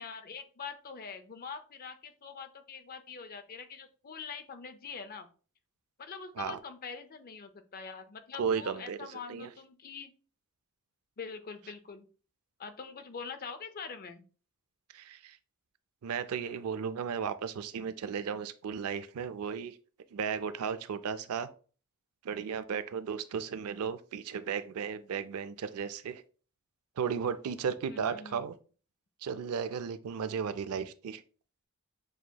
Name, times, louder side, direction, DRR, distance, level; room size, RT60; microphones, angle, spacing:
voice 1, 0.0-5.3 6.0-10.1 11.2-12.1 12.6-14.2 27.9-28.5, left 5 dB, 40° left, 9 dB, 0.5 m, -44 dB
voice 2, 8.4-9.0 9.3-9.5 14.9-15.4 16.0-19.8 20.1-21.5 22.2-26.2 27.0-28.6 29.2-31.2, right 6 dB, 75° right, 12 dB, 0.4 m, -35 dB
6.4 x 2.8 x 2.2 m, 0.38 s
head